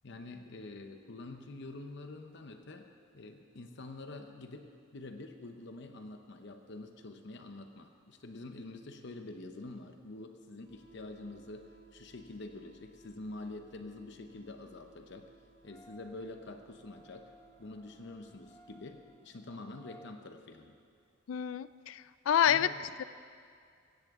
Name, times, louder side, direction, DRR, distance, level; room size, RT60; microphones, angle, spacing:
voice 1, 0.0-2.9 3.1-15.3 15.6-17.3 17.6-20.8 22.5-23.0, left 2 dB, 60° left, 6 dB, 0.8 m, -46 dB
sound 1, 10.6-19.0, right 4 dB, 55° right, 3.5 m, -62 dB
sound 2, 15.6-20.1, right 1 dB, 10° left, 0.8 m, -60 dB
voice 2, 21.3-22.7 23.0-23.1, left 9 dB, 80° left, 16 dB, 0.4 m, -28 dB
16.0 x 16.0 x 3.7 m, 2.2 s
head